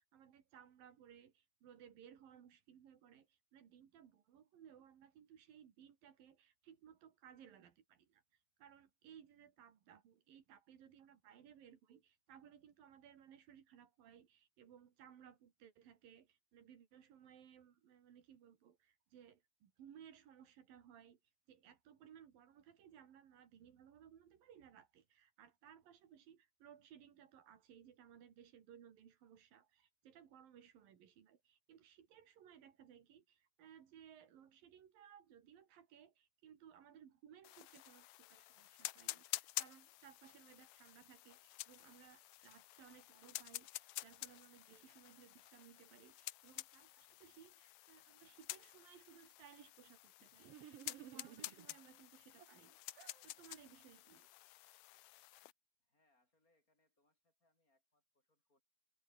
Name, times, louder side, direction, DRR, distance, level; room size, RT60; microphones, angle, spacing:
voice 1, 0.0-8.2 8.6-21.2 21.5-52.8 53.2-54.3, right 9 dB, 80° right, 4.2 m, -62 dB
sound 1, 37.4-55.5, left 17 dB, 80° left, 1.6 m, -50 dB
sound 2, 50.4-51.8 52.4-53.2, right 11 dB, 60° right, 1.7 m, -56 dB
voice 2, 55.8-58.6, left 2 dB, 20° left, 8.0 m, -81 dB
omnidirectional pair, 4.0 m